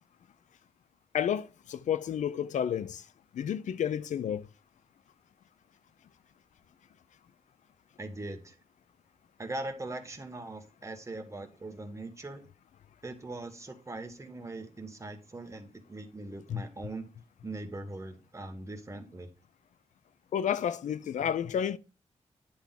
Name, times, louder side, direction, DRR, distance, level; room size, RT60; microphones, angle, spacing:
voice 1, 1.1-3.0 3.3-4.5 16.5-16.6 20.3-21.8, left 9 dB, 85° left, 0.5 m, -31 dB
voice 2, 8.0-8.6 9.4-12.4 13.0-17.1 17.4-19.3, right 2 dB, 25° right, 1.4 m, -41 dB
10.5 x 3.5 x 5.8 m
wide cardioid pair, 110°, 12 cm